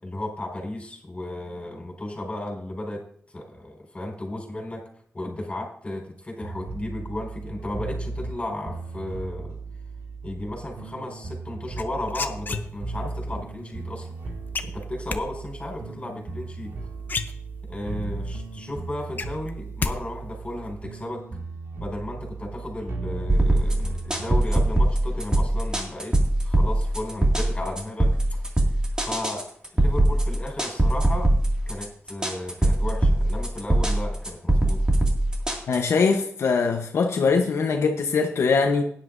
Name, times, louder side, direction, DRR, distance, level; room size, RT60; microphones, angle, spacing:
voice 1, 0.0-4.8 5.1-9.6 10.2-14.1 14.6-16.7 17.7-21.2 21.8-26.1 26.4-28.5 29.0-31.3 31.7-34.8, left 1 dB, 25° left, -1 dB, 4.5 m, -34 dB
sound 1, 6.4-24.4, right 3 dB, 75° right, 2.2 m, -36 dB
sound 2, 11.8-13.1 14.5-15.2 16.6-16.7 17.0-17.9 18.3-18.4 18.7-20.0 20.2-20.7, left 4 dB, 45° left, 0.8 m, -31 dB
sound 3, 23.3-36.1, right 1 dB, 15° right, 2.2 m, -22 dB
voice 2, 35.7-38.8, left 4 dB, 85° left, 2 dB, 1.0 m, -22 dB
17.0 x 10.5 x 2.6 m, 0.63 s
wide cardioid pair, 100°, 5 cm